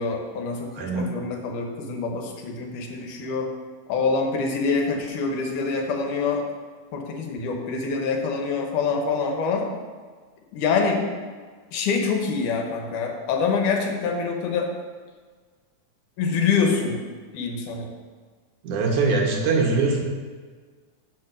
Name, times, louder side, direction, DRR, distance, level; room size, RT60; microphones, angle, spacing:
voice 1, 0.0-3.5 3.9-6.4 6.9-9.7 10.5-11.0 11.7-14.7 16.2-17.0 17.3-17.9, left 5 dB, 75° left, 2 dB, 2.4 m, -25 dB
voice 2, 0.7-1.1 18.6-20.0, right 3 dB, 70° right, 0 dB, 2.6 m, -22 dB
7.6 x 5.1 x 6.5 m, 1.5 s
omnidirectional pair, 3.7 m